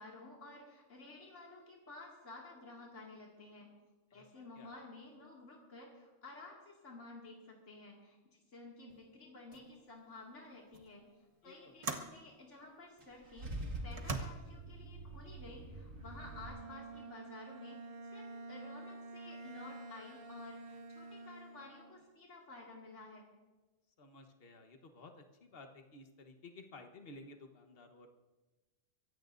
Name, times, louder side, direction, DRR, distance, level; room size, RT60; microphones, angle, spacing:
voice 1, 0.0-3.7 4.1-8.2 8.5-11.0 11.4-23.3, left 2 dB, 70° left, -3 dB, 2.7 m, -53 dB
voice 2, 4.1-4.7 11.4-11.7 24.0-28.1, left 2 dB, 50° left, 4 dB, 1.4 m, -55 dB
sound 1, 8.9-9.1 9.5-9.7 10.7-10.9 11.8-12.2 13.0-13.1 13.9-14.2, right 3 dB, 30° right, 1.0 m, -40 dB
Car / Engine starting / Idling, 13.0-16.5, right 1 dB, 80° right, 2.4 m, -45 dB
Bowed string instrument, 16.0-22.0, right 3 dB, 50° right, 1.3 m, -50 dB
24.0 x 16.5 x 2.6 m, 1.2 s
omnidirectional pair, 1.3 m